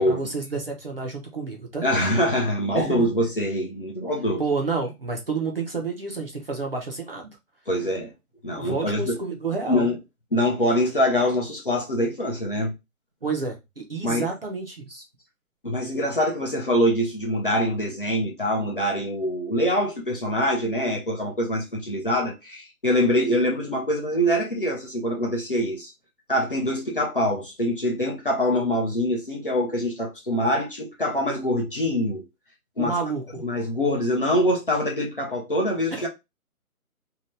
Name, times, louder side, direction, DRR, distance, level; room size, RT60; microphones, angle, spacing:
voice 1, 0.1-1.9 2.7-3.1 4.4-7.3 8.6-9.9 13.2-15.0 32.8-33.4 35.9-36.1, right 4 dB, 40° right, 0.6 m, -29 dB
voice 2, 1.8-4.4 7.7-8.1 8.4-9.2 9.7-10.0 10.3-12.7 14.0-14.3 15.6-25.9 26.3-32.2 32.8-33.0 33.4-36.1, equal, 35° left, 0.6 m, -24 dB
2.8 x 2.2 x 3.1 m
hypercardioid pair, 170°, 45 cm